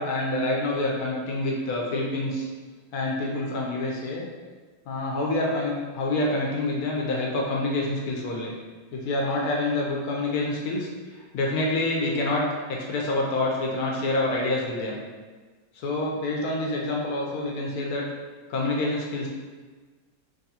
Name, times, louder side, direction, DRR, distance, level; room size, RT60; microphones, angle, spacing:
voice 1, 0.0-2.5 2.9-4.3 4.9-8.5 8.9-15.0 15.7-18.1 18.5-19.3, left 2 dB, 70° left, -2 dB, 1.0 m, -27 dB
3.5 x 3.1 x 2.8 m, 1.4 s
omnidirectional pair, 2.0 m